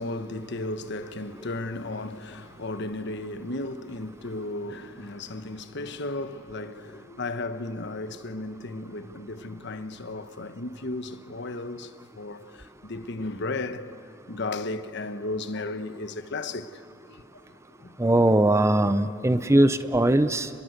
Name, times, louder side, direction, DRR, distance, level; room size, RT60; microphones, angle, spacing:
voice 1, 0.0-13.9 14.3-17.2 17.5-18.0, left 2 dB, 60° left, 1.2 m, -35 dB
voice 2, 18.0-20.5, right 1 dB, 15° right, 0.7 m, -20 dB
29.0 x 22.0 x 8.1 m
head